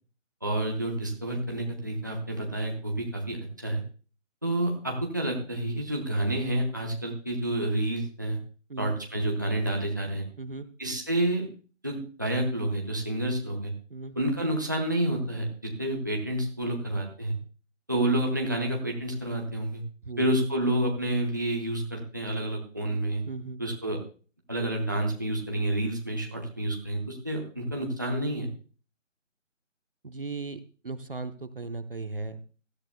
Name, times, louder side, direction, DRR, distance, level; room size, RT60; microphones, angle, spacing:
voice 1, 0.4-3.8 4.4-8.4 8.8-10.3 10.8-11.5 11.8-13.7 14.2-17.4 17.9-19.8 20.2-23.2 23.6-24.0 24.5-28.5, right 1 dB, 15° right, 0 dB, 0.8 m, -29 dB
voice 2, 10.4-10.7 13.9-14.1 20.0-20.3 23.3-23.6 30.0-32.4, right 3 dB, 45° right, 10 dB, 0.7 m, -37 dB
18.0 x 13.5 x 2.2 m, 0.38 s
figure-of-eight pair, 160°, 38 cm